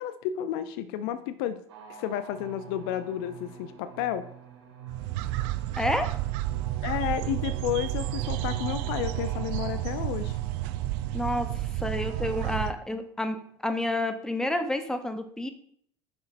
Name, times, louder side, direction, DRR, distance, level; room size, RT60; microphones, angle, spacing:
voice 1, 0.0-1.6 1.9-4.2 6.8-10.4, left 10 dB, 60° left, 12 dB, 0.4 m, -31 dB
sound 1, 1.7-12.8, right 8 dB, 70° right, 1.8 m, -46 dB
sound 2, 4.9-12.7, right 14 dB, 55° right, 0.4 m, -31 dB
voice 2, 5.8-6.1 11.1-11.5 11.8-13.4 13.6-15.5, left 1 dB, 5° left, 8 dB, 0.7 m, -29 dB
9.4 x 5.9 x 2.5 m, 0.63 s
figure-of-eight pair, 70°, 14 cm